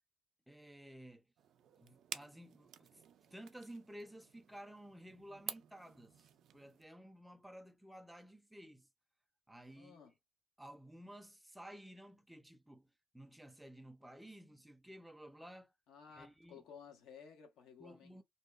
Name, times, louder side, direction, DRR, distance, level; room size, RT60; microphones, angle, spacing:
voice 1, 0.5-1.3 1.8-6.3 6.5-8.9 9.5-10.0 10.6-15.7 16.1-16.6 17.8-18.2, right 1 dB, 5° right, 0.5 m, -54 dB
sound 1, 1.4-6.8, right 10 dB, 75° right, 0.4 m, -51 dB
voice 2, 9.8-10.1 15.9-18.2, left 7 dB, 85° left, 1.0 m, -56 dB
2.7 x 2.1 x 2.3 m
cardioid pair, 90°, 0 cm